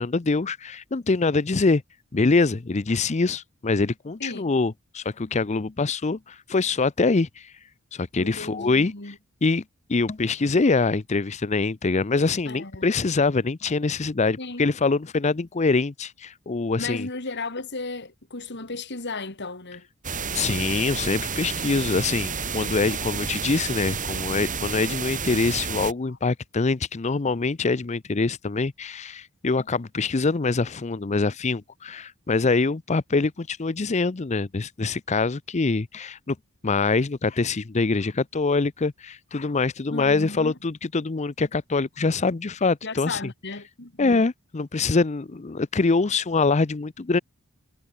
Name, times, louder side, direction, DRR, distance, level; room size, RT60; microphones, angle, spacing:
voice 1, 0.0-1.8 2.1-7.5 7.9-8.9 9.4-9.6 9.9-17.1 20.3-36.4 36.6-43.2 44.0-47.2, left 3 dB, 30° left, 0.6 m, -24 dB
voice 2, 4.2-4.5 8.2-9.2 12.5-12.9 14.4-14.7 16.8-19.9 26.1-26.2 39.9-40.6 42.8-44.3, left 3 dB, 55° left, 3.0 m, -35 dB
sound 1, 20.0-25.9, right 5 dB, 35° right, 4.0 m, -30 dB
head